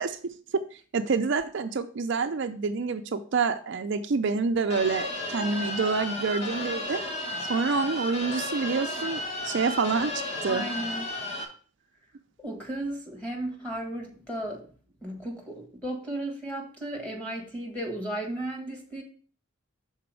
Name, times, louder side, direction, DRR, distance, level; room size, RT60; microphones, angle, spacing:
voice 1, 0.0-7.0 7.4-10.6, right 4 dB, 55° right, 0.4 m, -28 dB
sound 1, 4.7-11.4, left 2 dB, 30° left, 1.1 m, -33 dB
voice 2, 10.4-11.1 12.4-14.7 15.0-19.0, right 1 dB, 5° left, 1.4 m, -35 dB
6.0 x 4.0 x 6.1 m
head